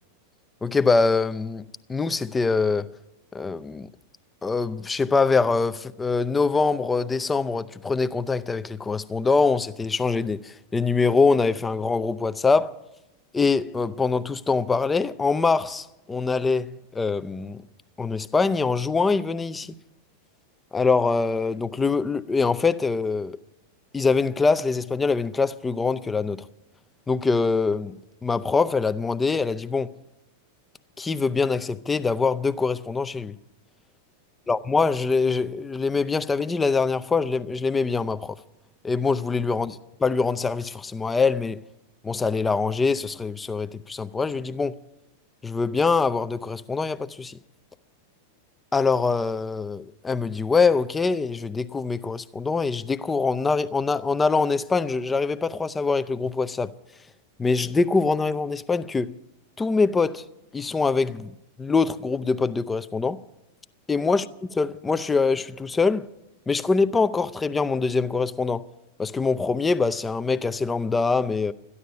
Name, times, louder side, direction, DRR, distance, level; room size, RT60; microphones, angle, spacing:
voice 1, 0.6-1.6 1.9-2.9 3.3-3.9 4.4-12.7 13.3-17.6 18.0-19.7 20.7-23.4 23.9-26.5 27.1-29.9 31.0-33.4 34.5-38.4 38.8-41.6 42.0-44.8 45.4-47.4 48.7-56.7 57.4-59.1 59.6-60.2 60.5-63.2 63.9-64.2 64.5-66.1 66.5-68.6 69.0-71.5, left 4 dB, 15° left, 0.6 m, -24 dB
13.5 x 11.0 x 8.9 m
figure-of-eight pair, 90°, 0 cm